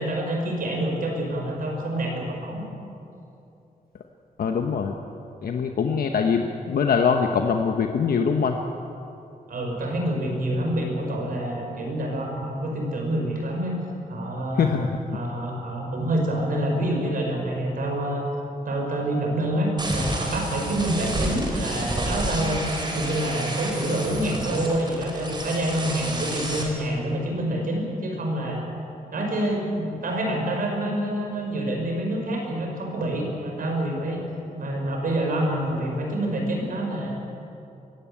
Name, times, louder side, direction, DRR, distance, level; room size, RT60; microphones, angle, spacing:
voice 1, 0.0-2.6 9.5-13.8 14.1-14.7 15.1-18.2 18.7-22.6 22.9-28.6 29.1-34.2 34.6-37.1, right 1 dB, 65° right, 1 dB, 5.3 m, -27 dB
voice 2, 4.4-4.9 5.4-8.6 14.6-15.0, left 6 dB, 80° left, 4 dB, 1.1 m, -23 dB
sound 1, 19.8-26.6, right 1 dB, 30° right, 3.9 m, -30 dB
21.5 x 16.5 x 8.6 m, 2.7 s
wide cardioid pair, 145°, 15 cm